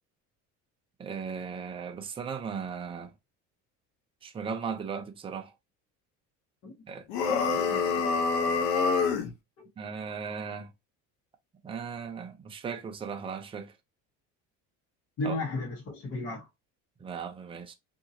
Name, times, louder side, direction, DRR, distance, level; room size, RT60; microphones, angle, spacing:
voice 1, 1.0-3.1 4.2-5.5 6.9-7.1 9.8-10.7 11.6-13.7 15.2-15.4 17.0-17.7, right 6 dB, 15° right, 0.4 m, -37 dB
sound 1, 7.1-9.3, left 5 dB, 90° left, 0.8 m, -26 dB
voice 2, 7.3-8.7 9.6-9.7 15.2-16.5, left 2 dB, 50° left, 1.3 m, -36 dB
2.8 x 2.6 x 2.7 m
cardioid pair, 130°, 32 cm